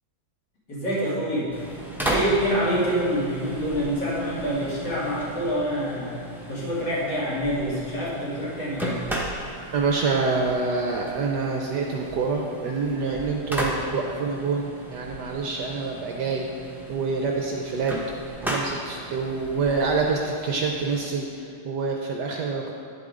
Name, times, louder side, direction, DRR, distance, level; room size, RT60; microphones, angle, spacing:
voice 1, 0.7-1.5 2.1-9.0, equal, 55° left, -9 dB, 3.3 m, -26 dB
sound 1, 1.5-21.1, right 1 dB, ahead, 0.6 m, -35 dB
voice 2, 9.7-18.0 18.4-22.7, right 4 dB, 65° right, 0 dB, 1.1 m, -26 dB
10.5 x 7.9 x 3.7 m, 2.6 s
omnidirectional pair, 2.2 m